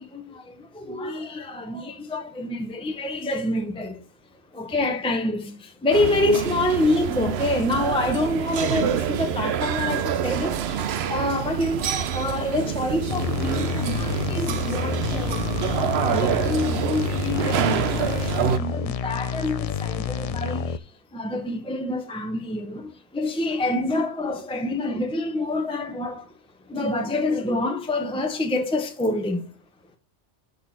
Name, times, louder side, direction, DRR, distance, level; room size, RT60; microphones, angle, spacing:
voice 1, 0.0-4.0 4.5-15.4 16.0-20.8 21.1-26.3 26.7-29.5, left 2 dB, 5° left, 0.9 m, -27 dB
sound 1, 5.9-18.6, right 8 dB, 65° right, 0.9 m, -27 dB
sound 2, 13.1-20.8, left 7 dB, 60° left, 0.4 m, -29 dB
6.6 x 6.5 x 5.7 m
omnidirectional pair, 1.2 m